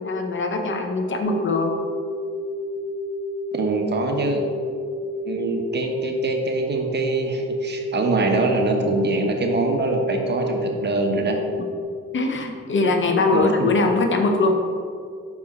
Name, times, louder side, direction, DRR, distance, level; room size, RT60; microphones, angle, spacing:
voice 1, 0.0-1.8 12.1-14.6, left 3 dB, 40° left, 4 dB, 0.7 m, -21 dB
sound 1, 1.2-11.8, left 1 dB, 75° left, 1.3 m, -30 dB
voice 2, 3.5-4.4 5.2-11.4 13.3-13.7, right 3 dB, 35° right, 3 dB, 0.9 m, -24 dB
6.0 x 4.8 x 4.1 m, 2.2 s
cardioid pair, 90°, 30 cm